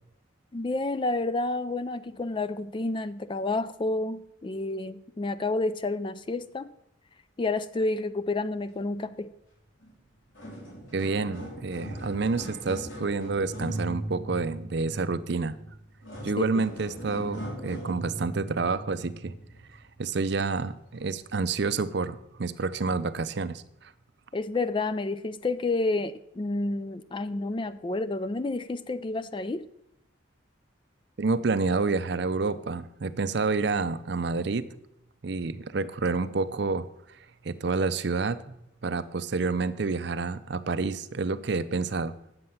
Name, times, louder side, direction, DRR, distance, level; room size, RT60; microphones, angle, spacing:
voice 1, 0.5-6.7 7.4-9.3 16.4-16.6 24.3-29.7, left 2 dB, 25° left, 14 dB, 0.3 m, -30 dB
sound 1, 9.8-9.9 10.2-19.9 20.5-20.7 21.5-21.6, right 1 dB, 75° left, 3.9 m, -39 dB
voice 2, 10.9-15.5 16.2-19.3 20.0-23.9 31.2-34.7 35.2-36.8 37.4-38.5 38.8-42.1, right 4 dB, 55° right, 14 dB, 0.5 m, -28 dB
9.3 x 7.7 x 5.6 m, 0.81 s
head